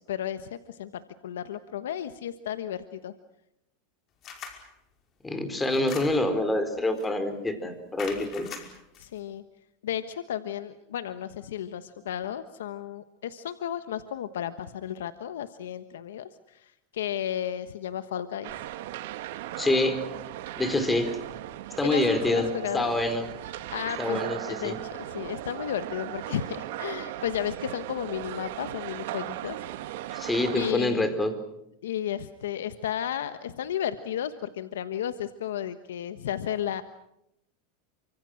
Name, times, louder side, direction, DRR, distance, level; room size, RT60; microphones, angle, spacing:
voice 1, 0.1-3.1 9.0-9.4 9.8-18.5 21.8-22.9 23.5-24.2 24.5-29.6 30.5-31.1 31.8-36.8, left 10 dB, 85° left, 11 dB, 1.2 m, -33 dB
sound 1, 4.2-4.7 5.6-6.4 7.0-7.2 8.0-9.1, left 6 dB, 40° left, 5.3 m, -42 dB
voice 2, 5.2-8.6 19.6-20.0 20.6-21.2 21.8-22.5 22.7-23.3 24.0-24.8 30.1-31.3, left 2 dB, 10° left, 9 dB, 4.3 m, -26 dB
sound 2, 18.4-30.7, right 14 dB, 70° right, 1.8 m, -37 dB
28.5 x 25.5 x 6.5 m, 0.82 s
supercardioid pair, 115°, 0 cm